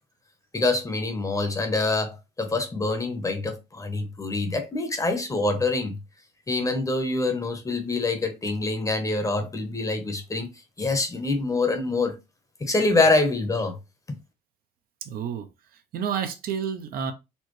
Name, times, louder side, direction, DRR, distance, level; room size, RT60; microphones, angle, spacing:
voice 1, 0.5-6.0 6.5-10.5 10.8-12.1 12.6-13.7, left 3 dB, 20° left, 0.8 m, -25 dB
voice 2, 15.0-15.5 15.9-17.1, right 7 dB, 60° right, 0.7 m, -29 dB
4.2 x 2.2 x 3.1 m
cardioid pair, 110°, 17 cm